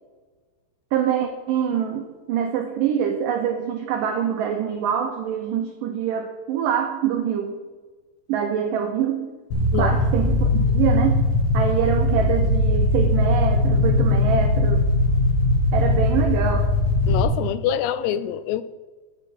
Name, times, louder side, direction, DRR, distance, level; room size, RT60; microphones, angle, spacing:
voice 1, 0.9-7.6 8.3-9.3 9.7-11.2 11.5-14.8 15.7-16.7, right 8 dB, 85° right, 4 dB, 1.9 m, -25 dB
sound 1, 9.5-17.3, left 2 dB, 55° left, 2.6 m, -20 dB
voice 2, 17.1-18.6, left 10 dB, 85° left, 14 dB, 2.6 m, -25 dB
11.5 x 7.5 x 4.6 m, 1.3 s
omnidirectional pair, 4.9 m